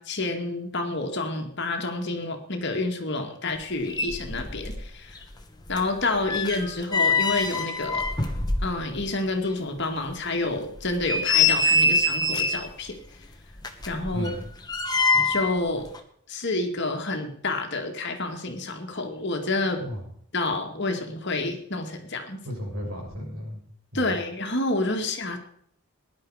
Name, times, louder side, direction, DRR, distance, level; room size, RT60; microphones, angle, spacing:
voice 1, 0.0-5.2 5.7-8.2 8.6-13.0 13.9-14.3 15.2-15.9 16.3-19.9 20.3-22.4 23.9-25.4, left 2 dB, 50° left, 4 dB, 2.1 m, -29 dB
sound 1, 3.6-3.7 3.9-4.9 5.2-9.1 9.5-9.6 10.1-10.2 10.8-12.7 13.6-15.6 15.8-16.0, left 3 dB, 20° left, 1.3 m, -25 dB
voice 2, 14.1-14.5 19.8-20.1 22.4-23.6 23.9-24.2, equal, 70° right, -2 dB, 7.6 m, -34 dB
19.5 x 11.0 x 5.0 m, 0.66 s
head